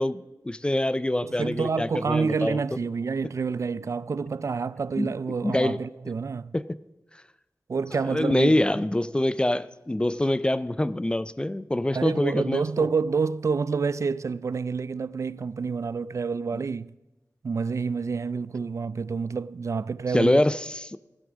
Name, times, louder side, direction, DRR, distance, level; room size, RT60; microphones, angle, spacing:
voice 1, 0.0-2.6 5.0-5.1 5.4-5.8 6.5-6.7 7.9-12.9 20.1-21.0, left 1 dB, 15° left, 0.4 m, -25 dB
voice 2, 1.2-6.5 7.7-8.6 11.9-16.9 17.4-20.4, right 5 dB, 55° right, 0.3 m, -28 dB
15.0 x 8.5 x 6.2 m
wide cardioid pair, 90°, 6 cm